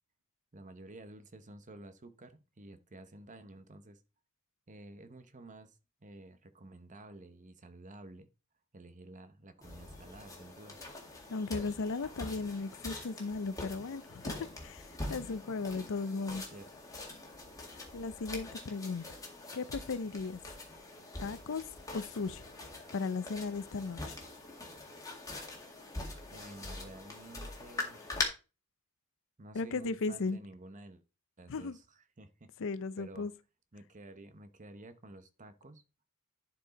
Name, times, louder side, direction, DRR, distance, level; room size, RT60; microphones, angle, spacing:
voice 1, 0.5-4.0 4.7-8.3 8.7-10.8 15.5-15.8 16.3-16.7 26.3-28.0 29.4-31.0 31.4-32.5 33.0-33.3 33.7-35.8, right 2 dB, 35° right, 0.9 m, -52 dB
sound 1, 9.6-28.2, left 2 dB, 15° left, 1.9 m, -43 dB
voice 2, 11.3-14.3 14.6-16.4 17.9-19.0 19.5-20.4 21.2-21.6 21.9-22.4 22.9-24.2 29.5-30.4 31.5-31.8 32.6-33.3, left 4 dB, 60° left, 0.6 m, -36 dB
11.0 x 4.6 x 4.1 m
head